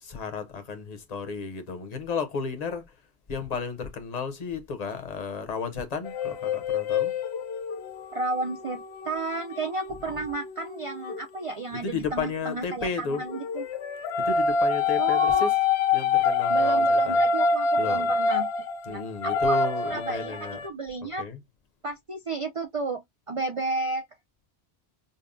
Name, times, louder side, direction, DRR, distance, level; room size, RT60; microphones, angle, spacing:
voice 1, 0.0-2.8 3.3-7.1 11.7-13.3 14.2-15.5 15.9-17.3 17.8-18.1 18.8-20.6 21.0-21.4, left 5 dB, 40° left, 0.9 m, -33 dB
sound 1, 6.0-11.2 13.1-20.7, left 4 dB, 80° left, 0.9 m, -26 dB
voice 2, 8.1-13.6 15.0-15.5 16.5-18.5 18.9-21.3 21.8-23.0 23.3-24.1, right 3 dB, 50° right, 0.4 m, -32 dB
5.3 x 2.1 x 2.5 m
omnidirectional pair, 1.1 m